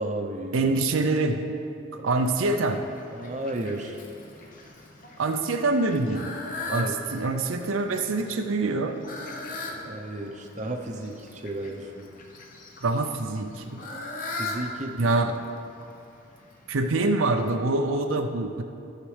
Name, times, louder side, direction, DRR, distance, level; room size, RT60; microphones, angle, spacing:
voice 1, 0.0-0.7 2.0-2.1 3.1-4.0 6.7-7.1 9.8-12.1 14.3-15.1, right 1 dB, 35° right, 2 dB, 0.7 m, -33 dB
voice 2, 0.5-1.4 2.0-2.8 5.2-6.3 6.7-9.0 12.8-13.8 14.9-15.3 16.7-18.6, right 3 dB, 85° right, 5 dB, 0.6 m, -25 dB
Fowl, 2.1-17.5, left 2 dB, 40° left, 0.9 m, -40 dB
14.5 x 6.6 x 3.3 m, 2.6 s
head